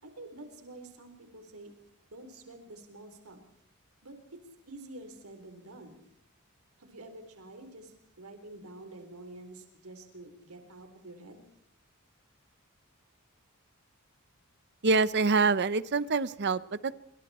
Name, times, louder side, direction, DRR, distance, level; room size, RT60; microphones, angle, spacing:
voice 1, 0.0-1.7 2.1-3.4 4.0-4.4 4.7-6.0 6.8-11.4, right 2 dB, 80° right, 6 dB, 3.9 m, -48 dB
voice 2, 14.8-16.9, right 4 dB, 50° right, 17 dB, 0.7 m, -26 dB
26.5 x 25.5 x 4.3 m, 0.70 s
head